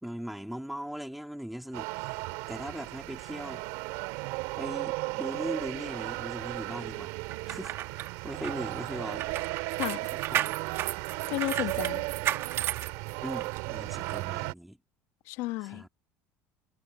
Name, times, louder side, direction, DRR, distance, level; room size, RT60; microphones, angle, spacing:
voice 1, 0.0-2.2 2.5-3.7 4.6-7.2 7.5-9.2 10.1-10.6 11.7-12.0 13.2-14.8 15.6-15.9, equal, ahead, 2.1 m, -39 dB
sound 1, 1.7-14.5, right 24 dB, 80° right, 3.2 m, -35 dB
sound 2, 7.3-13.6 14.0-14.2, right 12 dB, 50° right, 1.8 m, -34 dB
voice 2, 11.3-12.0 15.3-15.8, left 19 dB, 75° left, 1.3 m, -33 dB
supercardioid pair, 120°, 5 cm